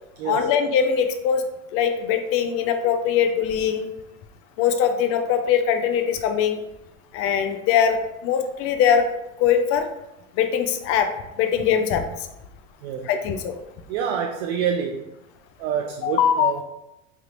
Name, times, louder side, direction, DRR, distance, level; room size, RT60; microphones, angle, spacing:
voice 1, 0.2-1.4 1.7-3.9 4.6-6.6 7.1-9.1 9.4-9.9 10.4-11.1 11.4-12.1 13.0-13.6 16.0-16.6, left 8 dB, 35° left, 7 dB, 0.4 m, -21 dB
voice 2, 13.9-15.1 15.6-16.6, right 7 dB, 55° right, 2 dB, 0.5 m, -27 dB
3.3 x 2.8 x 2.5 m, 0.89 s
hypercardioid pair, 90°, 41 cm